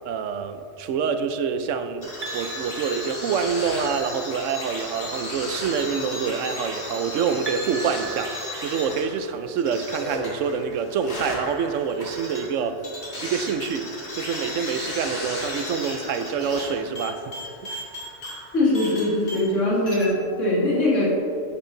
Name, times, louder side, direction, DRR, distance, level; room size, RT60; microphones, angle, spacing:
voice 1, 0.0-12.8 13.2-17.2 17.6-17.8, right 6 dB, 90° right, 9 dB, 1.0 m, -26 dB
sound 1, 2.0-19.6 19.9-20.1, left 1 dB, 50° left, 2.1 m, -35 dB
sound 2, 2.2-3.9 7.5-9.5, right 6 dB, 45° right, 0.8 m, -39 dB
voice 2, 18.5-21.1, left 1 dB, 80° left, -6 dB, 2.1 m, -21 dB
10.0 x 6.0 x 3.8 m, 2.4 s
omnidirectional pair, 1.3 m